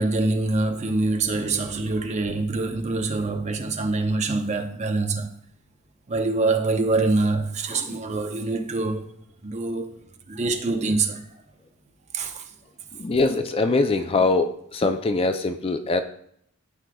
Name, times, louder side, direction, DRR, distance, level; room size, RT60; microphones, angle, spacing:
voice 1, 0.0-5.3 6.1-9.1 9.4-10.0 10.3-11.2 12.1-12.4, right 3 dB, 30° right, 0.7 m, -25 dB
voice 2, 12.9-16.0, left 3 dB, 25° left, 0.3 m, -23 dB
13.0 x 4.8 x 2.3 m
head